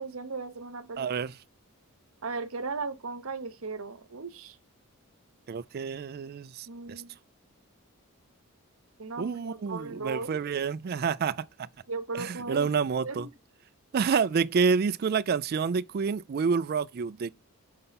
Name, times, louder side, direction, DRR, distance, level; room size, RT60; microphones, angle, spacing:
voice 1, 0.0-1.1 2.2-4.6 6.7-7.2 9.0-10.4 11.9-12.7 13.0-13.3, right 4 dB, 70° right, 0.9 m, -37 dB
voice 2, 1.0-1.3 5.5-6.7 9.2-11.4 12.2-13.3 13.9-17.3, right 5 dB, 45° right, 0.3 m, -28 dB
5.6 x 5.4 x 5.7 m
head